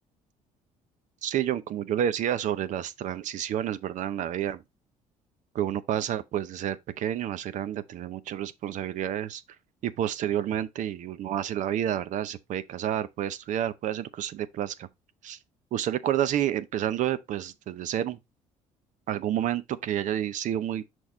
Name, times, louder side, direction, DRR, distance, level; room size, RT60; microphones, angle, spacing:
voice 1, 1.2-4.6 5.5-9.4 9.8-14.9 15.2-15.4 15.7-18.2 19.1-20.8, right 11 dB, 65° right, 0.7 m, -29 dB
6.3 x 4.6 x 3.6 m
supercardioid pair, 75°, 14 cm